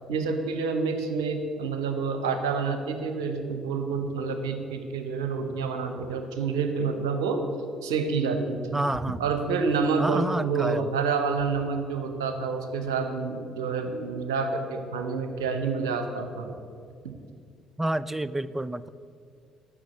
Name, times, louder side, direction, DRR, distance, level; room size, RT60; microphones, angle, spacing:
voice 1, 0.1-7.4 7.8-8.9 9.2-16.5, right 5 dB, 70° right, 6 dB, 0.8 m, -28 dB
voice 2, 8.7-9.2 10.0-10.9 17.8-18.9, right 1 dB, 10° right, 17 dB, 0.3 m, -29 dB
7.5 x 6.3 x 7.7 m, 2.3 s
figure-of-eight pair, 45°, 2 cm